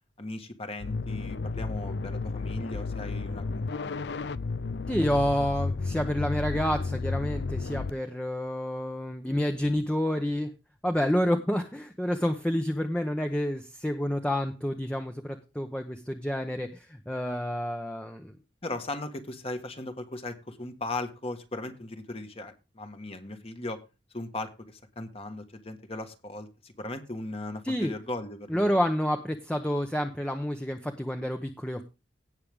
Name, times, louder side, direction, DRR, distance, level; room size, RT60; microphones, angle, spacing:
voice 1, 0.2-4.4 18.6-23.8 24.1-28.8, left 2 dB, 30° left, 7 dB, 1.6 m, -38 dB
sound 1, 0.8-7.9, left 4 dB, 60° left, 0.5 m, -32 dB
voice 2, 4.9-10.5 10.8-18.4 27.6-27.9 28.5-31.8, equal, 5° left, 5 dB, 0.9 m, -29 dB
17.5 x 6.6 x 3.5 m, 0.28 s
head